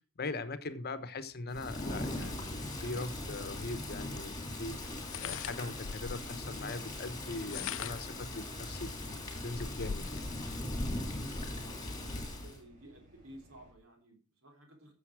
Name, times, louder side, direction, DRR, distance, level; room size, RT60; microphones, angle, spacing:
voice 1, 0.2-10.2, left 3 dB, 45° left, 1.0 m, -41 dB
Thunder / Rain, 1.5-12.6, left 1 dB, 20° left, 3.0 m, -40 dB
sound 1, 3.2-13.7, equal, 40° right, 5.0 m, -61 dB
sound 2, 5.0-6.3 7.3-8.2 8.8-8.9 9.2-10.3, left 8 dB, 65° left, 0.5 m, -41 dB
voice 2, 11.2-14.9, right 1 dB, 70° right, 3.6 m, -55 dB
14.5 x 7.1 x 4.8 m
head